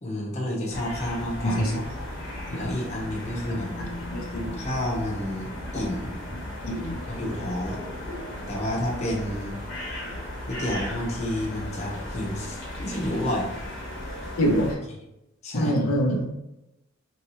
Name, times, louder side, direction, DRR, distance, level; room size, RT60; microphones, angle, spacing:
voice 1, 0.0-1.6 2.5-3.7 4.6-6.1 7.1-7.8 8.5-9.6 10.5-13.5 15.4-15.8, left 1 dB, 35° left, -4 dB, 0.8 m, -30 dB
sound 1, 0.7-14.7, left 1 dB, 60° left, 1.0 m, -36 dB
voice 2, 1.4-1.8 4.1-4.5 6.6-6.9 8.1-8.2 14.4-14.8 15.5-16.3, equal, 90° left, -1 dB, 0.7 m, -24 dB
3.1 x 2.8 x 3.0 m, 0.91 s
head